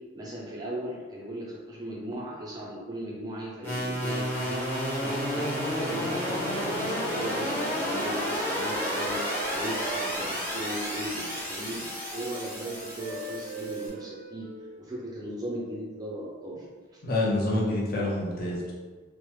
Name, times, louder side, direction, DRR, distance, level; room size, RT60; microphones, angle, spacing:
voice 1, 0.1-4.7 5.0-9.2 9.5-11.8 12.1-14.5 14.8-16.7 16.9-17.0, right 1 dB, 20° right, -5 dB, 0.4 m, -37 dB
sound 1, 3.6-13.9, equal, 10° left, 0.7 m, -31 dB
Wind instrument woodwind instrument, 7.8-15.3, right 4 dB, 85° right, 0.7 m, -42 dB
voice 2, 17.0-18.7, left 1 dB, 45° left, -5 dB, 0.7 m, -27 dB
3.1 x 2.0 x 3.0 m, 1.4 s
head